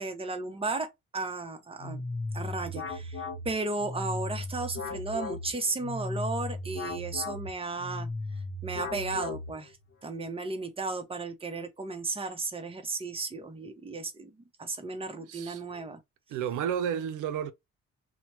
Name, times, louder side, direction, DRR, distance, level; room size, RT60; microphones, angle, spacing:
voice 1, 0.0-2.0 2.3-8.1 8.6-9.7 10.0-14.3 14.6-16.0, right 3 dB, 20° right, 0.8 m, -34 dB
sound 1, 1.8-9.9, left 2 dB, 40° left, 0.9 m, -36 dB
voice 2, 15.2-15.9 16.3-17.5, right 8 dB, 85° right, 0.5 m, -32 dB
2.8 x 2.2 x 2.9 m
cardioid pair, 90°, 30 cm